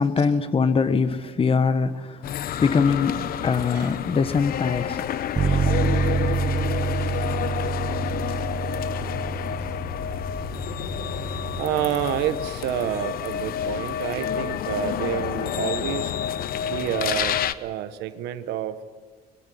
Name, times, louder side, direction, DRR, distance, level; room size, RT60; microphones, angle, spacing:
voice 1, 0.0-2.2 2.6-5.1, left 5 dB, 35° left, 1.4 m, -22 dB
sound 1, 2.2-17.5, left 9 dB, 60° left, 0.9 m, -29 dB
Bass guitar, 5.4-11.6, right 4 dB, 30° right, 1.0 m, -27 dB
voice 2, 5.7-6.0 6.4-7.8 8.3-8.5 10.1-10.2 11.6-16.2 16.6-18.8, right 12 dB, 85° right, 1.1 m, -30 dB
22.5 x 21.5 x 7.7 m
cardioid pair, 110°, 17 cm